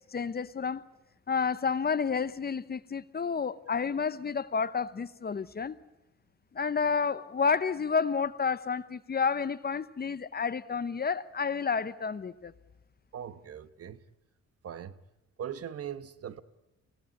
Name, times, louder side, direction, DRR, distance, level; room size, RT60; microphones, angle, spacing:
voice 1, 0.1-0.8 1.3-5.7 6.5-12.5, left 5 dB, 30° left, 0.9 m, -30 dB
voice 2, 13.1-14.0 14.6-14.9 15.4-16.4, right 9 dB, 50° right, 1.2 m, -40 dB
24.5 x 18.0 x 9.7 m
cardioid pair, 90°, 30 cm